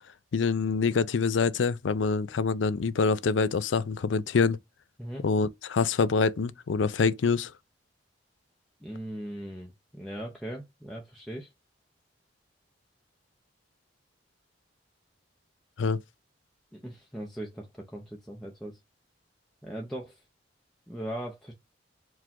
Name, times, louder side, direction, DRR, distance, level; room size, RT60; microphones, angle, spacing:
voice 1, 0.3-4.6 5.2-7.5 15.8-16.0, left 4 dB, 80° left, 0.5 m, -25 dB
voice 2, 8.8-11.5 16.7-18.8 19.6-20.2 20.9-21.5, right 1 dB, ahead, 0.7 m, -39 dB
4.7 x 2.4 x 3.6 m
head